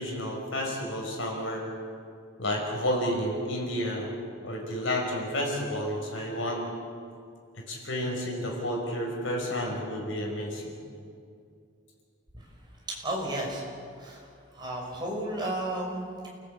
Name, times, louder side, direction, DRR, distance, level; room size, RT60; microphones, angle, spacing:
voice 1, 0.0-1.6 2.4-4.1 4.4-6.7 7.5-10.7, equal, 65° left, 0 dB, 5.6 m, -31 dB
voice 2, 12.9-13.6 14.0-14.3 14.5-16.3, right 1 dB, 20° right, -2 dB, 5.6 m, -33 dB
29.0 x 16.5 x 8.5 m, 2.3 s
head